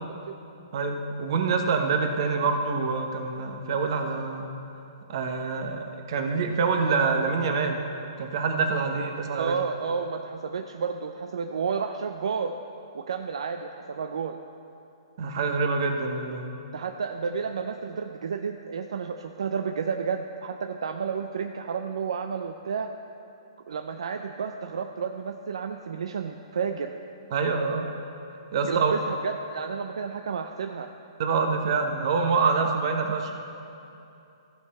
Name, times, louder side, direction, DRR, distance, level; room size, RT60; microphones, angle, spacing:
voice 1, 0.7-4.5 5.1-7.9 8.2-9.6 15.2-16.4 27.3-27.9 28.5-28.9 31.2-33.4, right 4 dB, 55° right, 4 dB, 1.1 m, -26 dB
voice 2, 9.4-12.6 12.9-14.4 16.7-22.9 23.7-26.9 28.7-30.9, right 6 dB, 80° right, 6 dB, 0.4 m, -31 dB
15.0 x 5.8 x 4.3 m, 2.8 s
hypercardioid pair, 140°, 3 cm